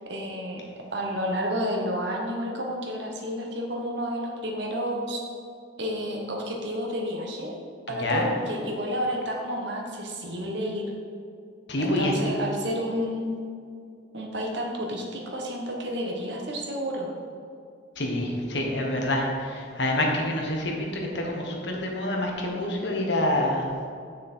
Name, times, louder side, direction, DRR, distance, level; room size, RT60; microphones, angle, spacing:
voice 1, 0.1-0.6 0.9-5.2 5.8-7.5 7.9-10.8 11.8-13.4 14.1-17.1, equal, 60° right, 0 dB, 1.3 m, -30 dB
voice 2, 7.9-8.3 11.7-12.1 18.0-23.6, left 1 dB, 60° left, 0 dB, 1.3 m, -27 dB
7.2 x 6.3 x 4.4 m, 2.3 s
head